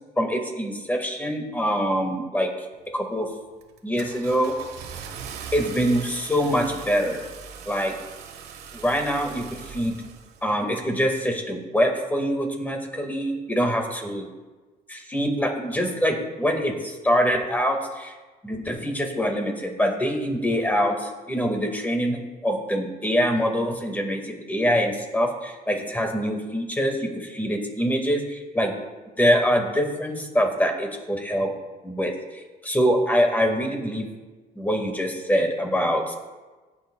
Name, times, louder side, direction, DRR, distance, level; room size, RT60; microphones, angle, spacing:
voice 1, 0.2-2.5 2.9-3.3 3.8-4.5 5.5-7.2 7.6-7.9 8.7-10.0 10.4-14.2 14.9-18.1 18.4-28.7 29.2-31.5 31.8-34.1 34.5-36.1, equal, 10° left, 3 dB, 1.8 m, -24 dB
Car / Engine starting, 2.8-3.2 3.6-10.6, right 7 dB, 75° right, 1.2 m, -40 dB
15.5 x 8.7 x 2.3 m, 1.3 s
cardioid pair, 110°, 17 cm